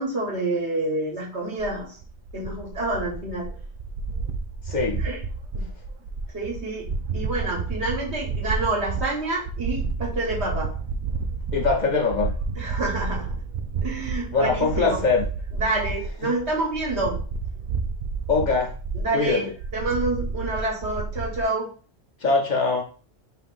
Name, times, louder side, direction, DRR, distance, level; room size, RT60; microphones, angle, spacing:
voice 1, 0.0-2.0 2.3-3.5 5.0-5.2 5.5-5.7 6.3-6.9 7.1-10.8 12.6-13.4 13.8-15.0 15.5-17.2 18.9-19.5 19.7-21.7, right 2 dB, 75° right, -2 dB, 1.7 m, -28 dB
sound 1, 1.6-21.4, right 4 dB, 60° right, 0.6 m, -31 dB
voice 2, 4.7-5.1 11.5-12.3 14.3-15.3 16.2-16.3 18.3-18.7 19.1-19.5 22.2-22.8, left 4 dB, 45° left, 0 dB, 0.7 m, -22 dB
5.5 x 3.3 x 2.5 m, 0.39 s
omnidirectional pair, 1.1 m